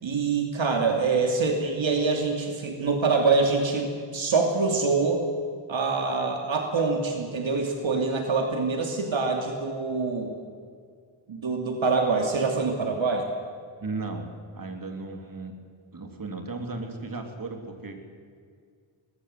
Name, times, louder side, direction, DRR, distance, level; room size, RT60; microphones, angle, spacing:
voice 1, 0.0-5.2 5.7-10.3 11.3-13.3, right 4 dB, 70° right, 3 dB, 2.7 m, -25 dB
voice 2, 13.8-15.5 15.9-18.2, right 3 dB, 40° right, 4 dB, 3.4 m, -36 dB
23.5 x 20.5 x 7.9 m, 2.1 s
wide cardioid pair, 95°, 49 cm